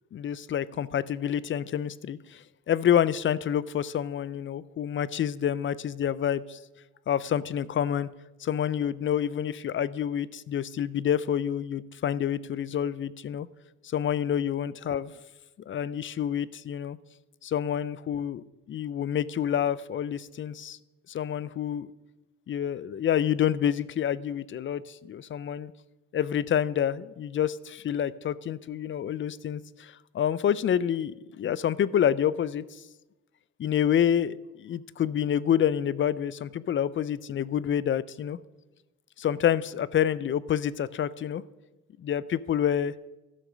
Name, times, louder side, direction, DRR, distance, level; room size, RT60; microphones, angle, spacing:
voice 1, 0.1-6.6 7.1-8.1 8.4-13.5 13.8-15.1 15.7-17.0 17.4-20.8 21.1-21.9 22.5-25.7 26.1-32.6 33.6-38.4 39.2-41.4 42.0-42.9, left 9 dB, 40° left, 19 dB, 0.4 m, -28 dB
12.0 x 6.4 x 6.2 m, 1.1 s
cardioid pair, 90°, 30 cm